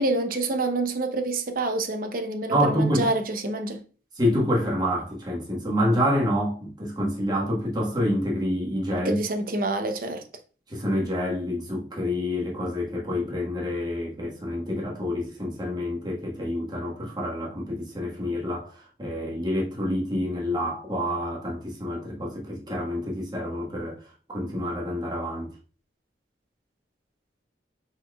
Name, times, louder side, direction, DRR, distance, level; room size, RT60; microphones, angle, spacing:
voice 1, 0.0-3.8 9.0-10.2, right 2 dB, 50° right, 0.7 m, -27 dB
voice 2, 2.5-3.1 4.2-9.2 10.7-24.0 24.3-25.5, equal, 25° right, 1.3 m, -27 dB
5.0 x 4.4 x 2.3 m
head